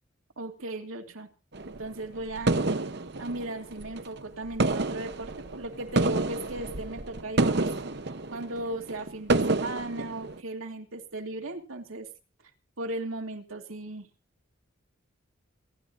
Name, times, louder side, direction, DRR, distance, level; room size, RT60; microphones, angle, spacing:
voice 1, 0.4-1.3 1.8-2.6 3.2-7.7 8.3-12.1 12.8-14.1, right 2 dB, 90° right, 5 dB, 2.8 m, -36 dB
sound 1, 1.5-4.2 4.5-10.4, right 2 dB, 55° right, 1.0 m, -29 dB
27.0 x 12.0 x 2.7 m, 0.34 s
head